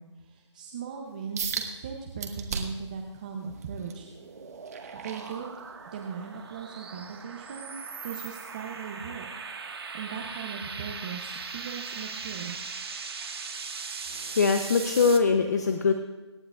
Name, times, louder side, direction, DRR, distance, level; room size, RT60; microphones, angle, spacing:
voice 1, 0.0-4.1 4.9-5.5 5.9-9.3 9.7-12.6, right 6 dB, 15° right, 1 dB, 0.7 m, -39 dB
sound 1, 1.4-1.7 2.2-2.9 3.4-6.0 6.4-6.7 7.2-7.3, right 6 dB, 35° right, 1.5 m, -36 dB
sound 2, 3.2-15.2, right 5 dB, 55° right, 1.6 m, -39 dB
voice 2, 14.1-15.9, left 5 dB, 35° left, 7 dB, 0.7 m, -23 dB
26.0 x 10.5 x 2.5 m, 1.1 s
hypercardioid pair, 170°, 15 cm